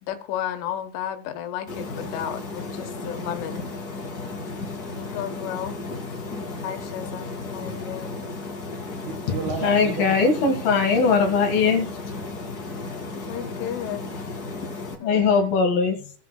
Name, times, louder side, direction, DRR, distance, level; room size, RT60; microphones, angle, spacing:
voice 1, 0.0-3.7 5.0-5.8 6.6-8.1 13.3-14.2 15.0-15.5, left 10 dB, 85° left, 3.7 m, -33 dB
sound 1, 1.7-14.9, left 3 dB, 40° left, 1.4 m, -34 dB
voice 2, 8.7-10.2 12.9-13.2, right 6 dB, 80° right, 4.0 m, -34 dB
voice 3, 9.6-11.9 15.0-16.1, left 5 dB, 60° left, 3.0 m, -20 dB
18.5 x 7.1 x 2.3 m
omnidirectional pair, 5.4 m